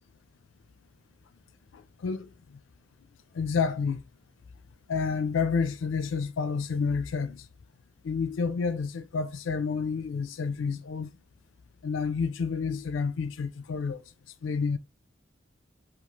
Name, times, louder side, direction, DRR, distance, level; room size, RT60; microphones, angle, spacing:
voice 1, 3.3-4.0 4.9-7.4 8.0-11.1 11.8-14.0 14.4-14.8, left 5 dB, 85° left, 0.4 m, -29 dB
3.0 x 2.4 x 2.4 m
head